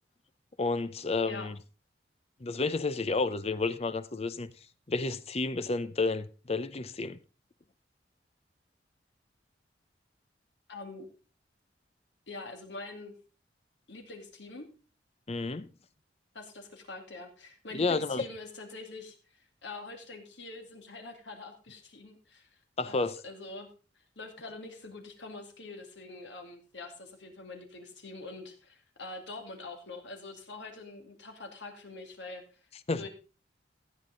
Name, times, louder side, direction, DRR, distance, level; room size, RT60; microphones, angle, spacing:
voice 1, 0.6-1.5 2.4-4.5 4.9-7.2 15.3-15.7 17.7-18.2 22.8-23.2 32.9-33.1, left 3 dB, 35° left, 0.7 m, -31 dB
voice 2, 10.7-11.1 12.3-13.1 13.9-14.6 16.3-22.6 22.8-23.7 24.0-32.6 33.0-33.1, left 3 dB, 80° left, 2.6 m, -44 dB
14.5 x 8.7 x 3.8 m
head